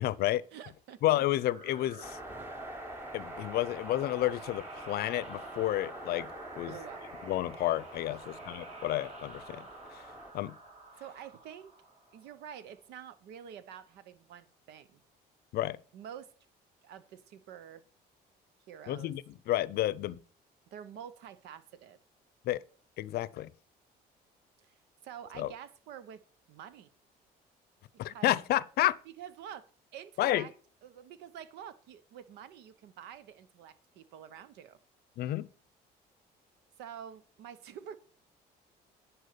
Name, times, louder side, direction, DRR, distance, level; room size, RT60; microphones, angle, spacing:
voice 1, 0.0-0.4 1.0-2.2 3.1-6.3 6.6-6.7 7.3-10.0 10.3-10.5 15.5-15.8 18.9-20.2 22.5-22.6 23.0-23.5 25.4-25.5 28.0-29.0 30.2-30.5 35.2-35.5, left 14 dB, 70° left, 0.6 m, -31 dB
voice 2, 0.5-1.0 6.7-7.0 8.1-8.4 11.0-11.7 12.1-15.0 15.9-16.3 16.8-17.8 18.7-19.1 20.7-22.0 24.6-24.7 25.0-26.2 26.5-26.9 28.0-28.4 29.0-30.5 30.8-34.8 36.8-38.0, right 9 dB, 85° right, 0.9 m, -48 dB
sound 1, 1.4-12.7, right 2 dB, 40° right, 2.9 m, -49 dB
sound 2, 2.0-10.3, right 1 dB, 10° right, 1.0 m, -46 dB
10.5 x 4.6 x 6.7 m
cardioid pair, 110°, 17 cm